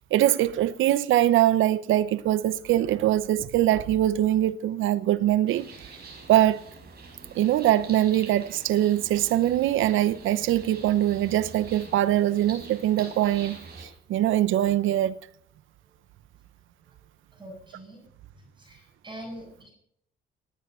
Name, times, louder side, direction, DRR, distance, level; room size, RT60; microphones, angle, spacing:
voice 1, 0.1-5.7 6.3-6.6 7.3-13.6 14.1-15.1, right 13 dB, 80° right, 0.8 m, -22 dB
sound 1, 5.5-13.9, right 4 dB, 55° right, 5.5 m, -45 dB
voice 2, 17.4-18.0 18.6-19.7, right 1 dB, 25° right, 6.0 m, -43 dB
18.0 x 9.3 x 5.6 m
cardioid pair, 90°, 20 cm